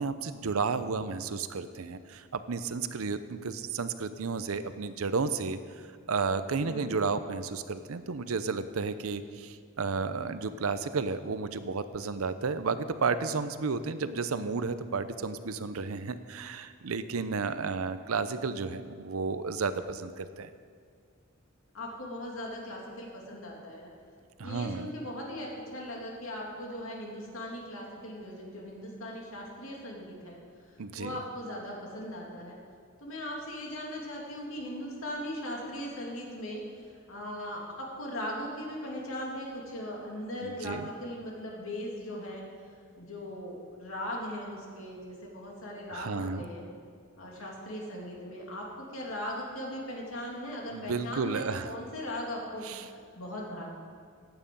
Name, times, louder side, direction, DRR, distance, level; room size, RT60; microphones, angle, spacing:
voice 1, 0.0-5.6 6.1-20.5 24.4-24.9 30.8-31.2 40.4-40.9 45.9-46.4 50.7-51.7 52.6-52.8, right 4 dB, 90° right, 12 dB, 0.7 m, -32 dB
voice 2, 6.6-7.0 21.7-23.9 24.4-30.4 31.0-32.6 33.0-42.4 43.0-46.6 47.2-53.6, left 1 dB, 70° left, -2 dB, 2.8 m, -39 dB
14.5 x 9.1 x 5.4 m, 2.1 s
head